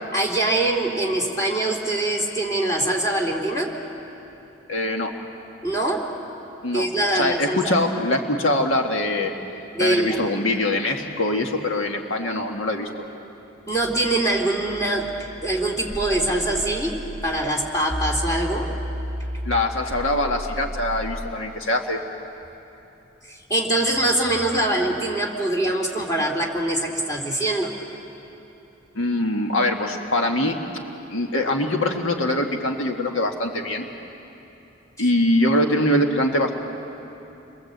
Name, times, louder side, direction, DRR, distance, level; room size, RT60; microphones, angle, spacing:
voice 1, 0.1-3.8 5.6-6.2 6.7-7.7 9.7-10.2 13.7-18.8 23.3-27.7, right 1 dB, 15° left, -1 dB, 2.8 m, -23 dB
voice 2, 4.7-5.1 6.6-6.9 7.1-9.3 9.8-12.9 19.4-22.0 29.0-30.6 31.1-33.9 35.0-36.5, left 1 dB, 80° left, 2 dB, 1.8 m, -23 dB
sound 1, 15.9-17.4 17.9-21.4, equal, 20° right, 1.6 m, -32 dB
29.5 x 22.5 x 8.1 m, 2.9 s
head